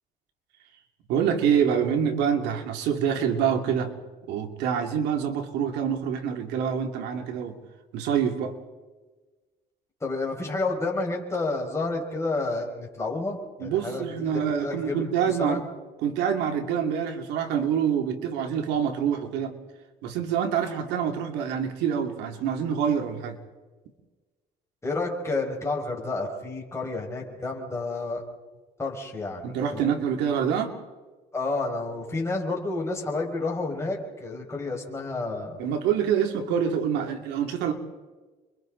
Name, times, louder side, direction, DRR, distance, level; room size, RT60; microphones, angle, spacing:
voice 1, 1.1-4.0 4.3-7.6 7.9-8.6 13.6-15.6 16.0-19.6 20.0-23.4 29.4-30.8 35.6-37.7, right 8 dB, 90° right, 4 dB, 2.6 m, -26 dB
voice 2, 10.0-14.0 14.3-15.0 15.4-15.6 24.8-28.2 28.8-29.9 31.3-35.6, left 3 dB, 15° left, -1 dB, 5.5 m, -30 dB
29.5 x 24.0 x 4.0 m, 1.3 s
cardioid pair, 110°, 17 cm